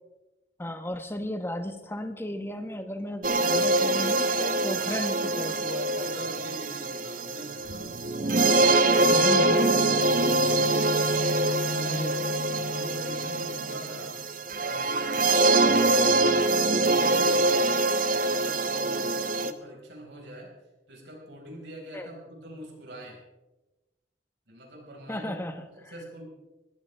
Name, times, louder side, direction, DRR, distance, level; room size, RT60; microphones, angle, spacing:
voice 1, 0.6-6.1 8.2-8.6 9.0-9.8 11.9-12.4 21.9-22.1 25.1-25.9, left 1 dB, 15° left, 8 dB, 1.0 m, -35 dB
sound 1, 3.2-19.5, right 2 dB, 50° right, 0.8 m, -24 dB
voice 2, 6.0-7.9 8.4-10.4 11.1-14.2 14.6-17.7 18.1-20.5 20.9-23.2 24.5-25.4 25.7-26.4, right 1 dB, 75° right, -1 dB, 5.0 m, -44 dB
sound 2, 9.0-14.1, left 4 dB, 60° left, 0.4 m, -34 dB
21.0 x 15.0 x 3.4 m, 1.1 s
head